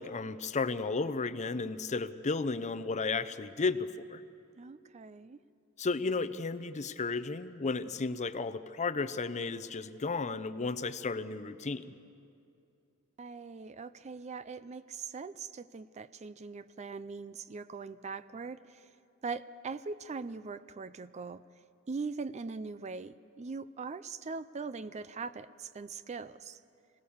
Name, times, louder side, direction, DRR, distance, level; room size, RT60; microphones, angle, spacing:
voice 1, 0.0-4.2 5.8-11.8, left 4 dB, 30° left, 13 dB, 0.6 m, -33 dB
voice 2, 4.6-5.4 13.2-18.9 19.2-21.4 21.9-26.6, right 4 dB, 30° right, 15 dB, 0.4 m, -41 dB
25.5 x 17.5 x 7.2 m, 2.6 s
head